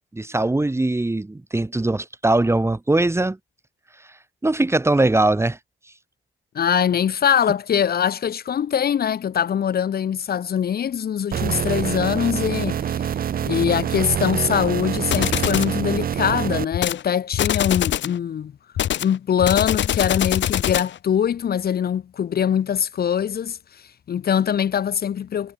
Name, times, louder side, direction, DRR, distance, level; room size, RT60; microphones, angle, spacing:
voice 1, 0.0-3.4 4.4-5.6, right 2 dB, 15° right, 2.2 m, -21 dB
voice 2, 6.5-13.1 13.4-18.5 19.0-23.8 24.1-25.5, left 8 dB, 50° left, 1.1 m, -22 dB
sound 1, 11.3-16.7, right 9 dB, 45° right, 0.7 m, -25 dB
sound 2, 15.1-15.8 16.7-17.0 17.3-18.2 18.8-21.0, left 11 dB, 70° left, 1.9 m, -23 dB
cardioid pair, 90°, 20 cm